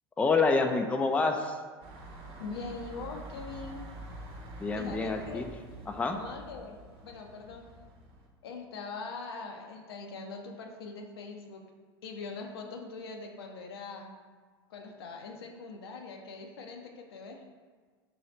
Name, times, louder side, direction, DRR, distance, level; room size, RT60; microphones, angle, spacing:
voice 1, 0.2-1.5 4.6-5.5 5.9-6.2, left 3 dB, 10° left, 5 dB, 0.3 m, -27 dB
sound 1, 1.8-8.3, right 1 dB, 45° right, 0.8 m, -46 dB
voice 2, 2.4-3.9 4.7-5.4 6.2-7.6 8.4-11.6 12.0-14.1 14.7-17.4, left 4 dB, 80° left, 2 dB, 0.5 m, -42 dB
3.1 x 2.7 x 4.3 m, 1.4 s
hypercardioid pair, 90°, 13 cm